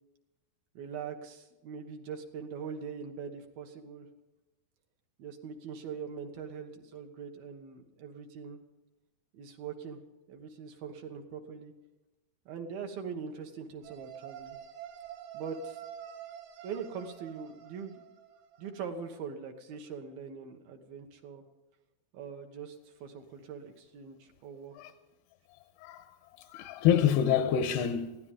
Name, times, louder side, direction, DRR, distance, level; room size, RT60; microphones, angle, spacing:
voice 1, 0.7-4.1 5.2-8.6 9.3-10.0 10.3-11.7 12.5-14.6 15.3-15.8 16.6-18.0 18.6-21.4 22.1-24.8, right 6 dB, 70° right, 3.1 m, -42 dB
sound 1, 13.8-18.8, right 10 dB, 90° right, 3.6 m, -47 dB
voice 2, 26.4-28.2, left 9 dB, 80° left, 2.8 m, -27 dB
22.5 x 16.0 x 3.7 m
omnidirectional pair, 4.7 m